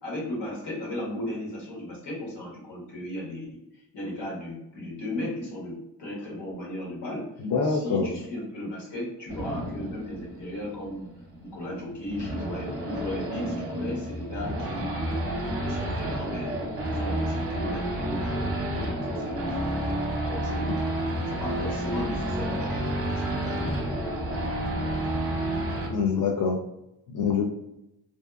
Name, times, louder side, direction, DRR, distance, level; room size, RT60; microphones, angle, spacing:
voice 1, 0.0-7.3 7.6-11.1 11.4-14.9 15.4-16.6 16.9-20.0 20.3-20.8 21.3-25.0 25.7-26.3, left 1 dB, 65° left, -3 dB, 1.3 m, -36 dB
voice 2, 7.4-8.1 25.9-26.6 27.1-27.5, left 5 dB, 50° left, 0 dB, 0.5 m, -25 dB
Race car auto racing / Idling / Accelerating revving vroom, 9.3-25.9, right 1 dB, 30° right, 0.7 m, -30 dB
2.6 x 2.2 x 2.3 m, 0.86 s
supercardioid pair, 50°, 43 cm